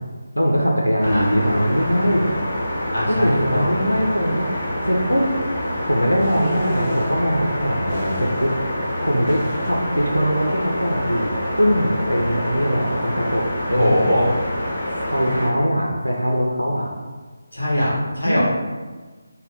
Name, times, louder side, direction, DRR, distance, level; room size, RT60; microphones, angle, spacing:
voice 1, 0.4-2.3 3.1-4.5 4.9-5.3 5.8-8.5 9.0-14.0 15.1-16.9 18.2-18.4, equal, 90° right, -2 dB, 0.4 m, -21 dB
sound 1, 1.0-15.5, left 1 dB, 40° left, 0.8 m, -26 dB
voice 2, 2.9-3.7 13.7-14.3 17.5-18.4, left 1 dB, 65° left, -7 dB, 1.1 m, -21 dB
sound 2, 6.2-7.2 7.9-8.6 8.9-9.7, equal, 10° left, 0.8 m, -33 dB
2.6 x 2.2 x 3.3 m, 1.4 s
figure-of-eight pair, 155°, 0 cm